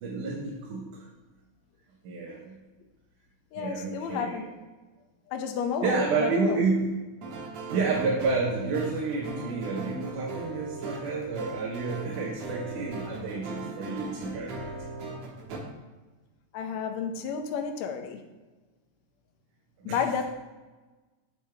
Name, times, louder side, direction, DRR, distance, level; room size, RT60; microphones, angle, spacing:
voice 1, 0.0-1.1 2.0-2.6 3.6-4.4 5.8-6.9 7.7-14.7 19.8-20.0, right 4 dB, 90° right, 2.5 m, -30 dB
voice 2, 3.5-4.5 5.3-6.6 16.5-18.2 19.9-20.2, left 6 dB, 75° left, 1.9 m, -31 dB
sound 1, 7.2-15.6, right 3 dB, 65° right, 2.3 m, -39 dB
8.4 x 6.3 x 3.4 m
omnidirectional pair, 3.5 m